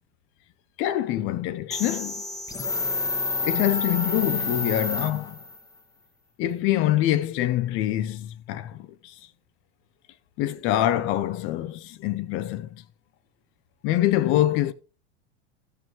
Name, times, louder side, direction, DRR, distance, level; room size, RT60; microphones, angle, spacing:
voice 1, 0.8-2.2 3.4-5.4 6.4-9.1 10.4-12.8 13.8-14.7, left 13 dB, 35° left, 0.8 m, -25 dB
sound 1, 1.7-5.6, left 3 dB, 10° left, 1.2 m, -29 dB
14.5 x 6.6 x 3.3 m
figure-of-eight pair, 85°, 34 cm